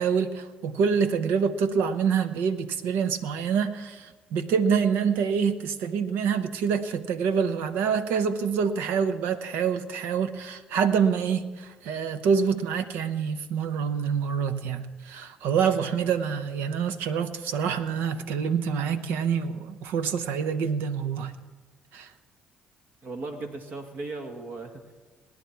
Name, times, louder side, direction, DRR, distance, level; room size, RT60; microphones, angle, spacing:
voice 1, 0.0-21.4 21.9-22.1, right 6 dB, 70° right, 0.9 m, -26 dB
voice 2, 23.0-24.9, right 3 dB, 55° right, 2.1 m, -37 dB
19.0 x 10.5 x 4.6 m
hypercardioid pair, 50°, 4 cm